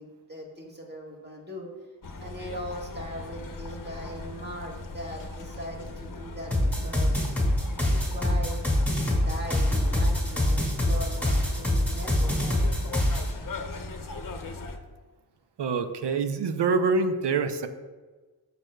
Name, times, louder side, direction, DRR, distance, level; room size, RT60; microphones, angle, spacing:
voice 1, 0.0-1.7 2.2-7.2 7.9-8.7 9.2-12.6, equal, 25° right, -2 dB, 1.7 m, -40 dB
sound 1, 2.0-14.8, left 2 dB, 50° left, 0.8 m, -39 dB
sound 2, 6.5-13.3, left 1 dB, 5° left, 2.1 m, -24 dB
voice 2, 15.6-17.7, right 4 dB, 70° right, 8 dB, 0.7 m, -25 dB
12.5 x 5.2 x 2.3 m, 1.3 s
wide cardioid pair, 85°, 43 cm